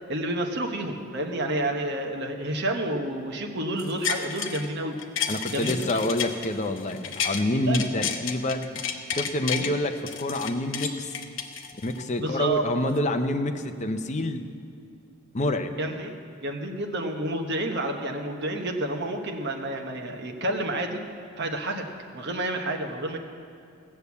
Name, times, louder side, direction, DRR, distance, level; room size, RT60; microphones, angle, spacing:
voice 1, 0.1-5.0 5.5-5.9 7.7-7.9 9.6-9.7 12.2-12.6 15.8-21.0 21.4-21.9 22.1-23.2, right 1 dB, 55° right, 3 dB, 1.2 m, -30 dB
sound 1, 3.8-4.7 5.0-7.4 7.7-9.7 10.1-12.1 12.5-12.6, left 7 dB, 60° left, 0.9 m, -31 dB
voice 2, 5.3-8.8 9.1-11.1 11.8-14.5 15.3-15.8, left 1 dB, 35° left, 6 dB, 0.6 m, -27 dB
16.0 x 6.8 x 8.3 m, 2.5 s
head